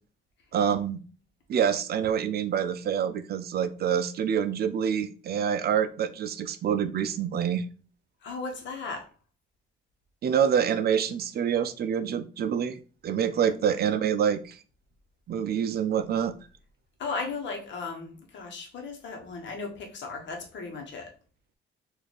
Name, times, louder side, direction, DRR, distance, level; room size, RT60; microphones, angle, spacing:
voice 1, 0.5-1.0 1.5-7.7 10.2-14.6 15.3-16.3, right 8 dB, 50° right, 12 dB, 0.4 m, -26 dB
voice 2, 8.2-9.1 13.5-13.6 17.0-21.1, left 4 dB, 65° left, 2 dB, 1.1 m, -36 dB
4.0 x 2.6 x 3.2 m, 0.37 s
cardioid pair, 90°, 20 cm